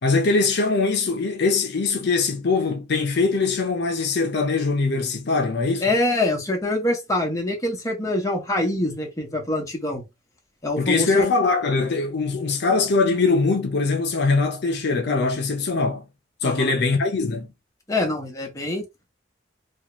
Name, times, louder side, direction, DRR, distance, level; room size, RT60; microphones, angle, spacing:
voice 1, 0.0-5.9 10.8-16.0 16.4-17.5, left 3 dB, 60° left, 0.5 m, -22 dB
voice 2, 5.8-10.0 10.6-11.3 16.4-16.7 17.9-18.8, left 1 dB, 15° left, 0.8 m, -25 dB
2.7 x 2.3 x 2.9 m
head